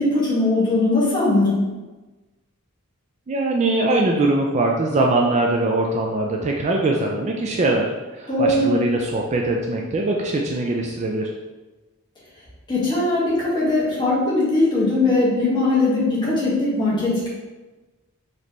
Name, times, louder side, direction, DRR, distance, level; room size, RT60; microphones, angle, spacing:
voice 1, 0.0-1.6 8.3-8.8 12.7-17.3, left 2 dB, 20° left, -8 dB, 1.4 m, -20 dB
voice 2, 3.3-11.3, right 2 dB, 30° right, 0 dB, 0.3 m, -22 dB
4.1 x 3.2 x 3.0 m, 1.2 s
head